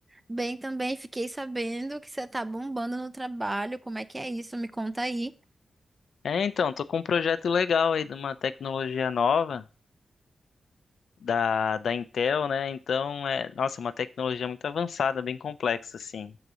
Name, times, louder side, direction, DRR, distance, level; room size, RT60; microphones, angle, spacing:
voice 1, 0.3-5.3, right 2 dB, 15° right, 13 dB, 0.5 m, -32 dB
voice 2, 6.2-9.6 11.2-16.3, left 6 dB, 80° left, 13 dB, 0.5 m, -28 dB
6.8 x 4.0 x 6.1 m, 0.34 s
wide cardioid pair, 110°, 0 cm